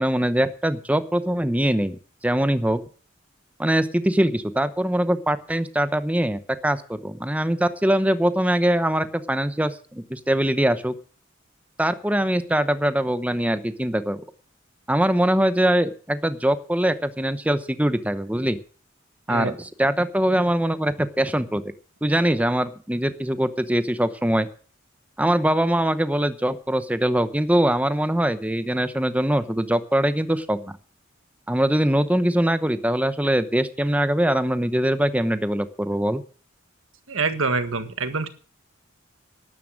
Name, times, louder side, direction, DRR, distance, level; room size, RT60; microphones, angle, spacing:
voice 1, 0.0-2.8 3.6-10.9 11.8-14.2 14.9-18.6 19.3-21.6 22.0-24.5 25.2-30.7 31.5-36.2, right 1 dB, 5° right, 11 dB, 0.9 m, -22 dB
voice 2, 37.1-38.3, right 4 dB, 90° right, 10 dB, 1.7 m, -25 dB
12.5 x 11.0 x 6.5 m, 0.40 s
head